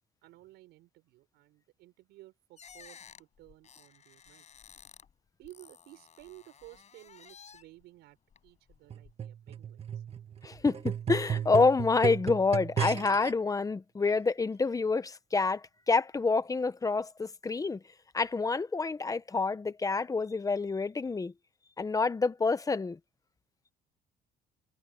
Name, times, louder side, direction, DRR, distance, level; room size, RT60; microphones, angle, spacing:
voice 1, 0.2-4.4 5.4-8.2 8.4-10.0, right 18 dB, 85° right, 6.5 m, -55 dB
sound 1, 2.6-5.1 5.4-7.8 8.3-9.1, left 7 dB, 40° left, 7.1 m, -54 dB
sound 2, 8.9-13.3 14.1-14.2, right 8 dB, 35° right, 1.6 m, -34 dB
voice 2, 10.4-17.8 18.1-21.3 21.8-23.0, left 4 dB, 20° left, 1.1 m, -28 dB
cardioid pair, 110°, 17 cm